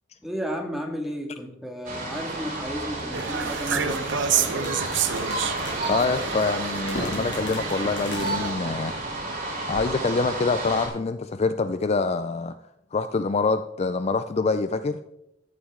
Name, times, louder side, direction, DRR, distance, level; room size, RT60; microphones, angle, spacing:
voice 1, 0.2-4.8, equal, ahead, 1 dB, 1.9 m, -33 dB
sound 1, 1.8-10.9, right 2 dB, 45° right, 5.1 m, -31 dB
sound 2, 3.1-8.5, right 7 dB, 80° right, 0.9 m, -29 dB
sound 3, 4.3-9.4, left 1 dB, 65° left, 2.4 m, -39 dB
voice 2, 5.9-8.9 9.7-12.5 12.9-15.0, left 4 dB, 35° left, 11 dB, 0.4 m, -25 dB
14.0 x 10.0 x 3.7 m, 0.87 s
head